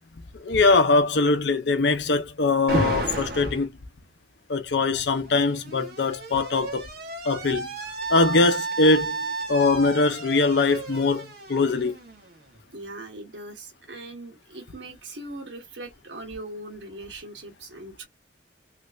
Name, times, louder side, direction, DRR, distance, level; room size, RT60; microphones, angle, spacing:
voice 1, 0.4-3.7 4.5-6.9 7.2-7.7 8.1-11.9, left 3 dB, 65° left, 0.7 m, -22 dB
Alarm, 2.7-3.7 4.9-12.6, right 2 dB, 55° right, 1.3 m, -32 dB
voice 2, 12.7-18.1, right 2 dB, 75° right, 1.3 m, -40 dB
3.2 x 3.1 x 2.5 m
head